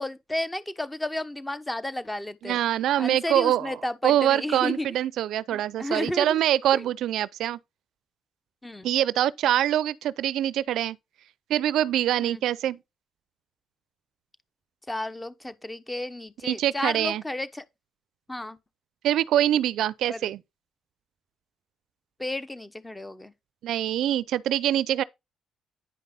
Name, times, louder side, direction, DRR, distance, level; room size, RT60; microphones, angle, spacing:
voice 1, 0.0-2.6 3.0-4.9 5.5-6.4 6.7-6.9 8.6-8.9 12.2-12.4 14.9-17.6 18.3-18.6 20.1-20.3 22.2-23.3, left 1 dB, 15° left, 1.0 m, -32 dB
voice 2, 2.4-3.8 4.0-7.6 8.8-11.0 11.5-12.8 16.4-17.2 19.0-20.4 23.6-25.0, right 12 dB, 80° right, 0.4 m, -24 dB
9.6 x 5.3 x 3.8 m
cardioid pair, 90°, 0 cm